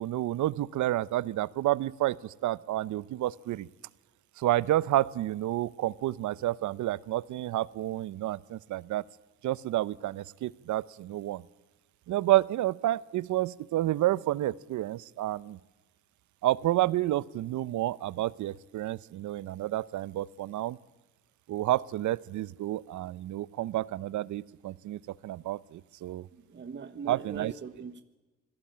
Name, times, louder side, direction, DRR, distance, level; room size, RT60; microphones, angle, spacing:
voice 1, 0.0-3.7 4.4-9.0 9.4-11.5 12.1-15.6 16.4-20.8 21.5-26.3 27.1-27.5, right 15 dB, 75° right, 0.8 m, -30 dB
voice 2, 26.3-28.0, right 5 dB, 40° right, 1.3 m, -41 dB
26.5 x 17.5 x 8.7 m
cardioid pair, 90°, 30 cm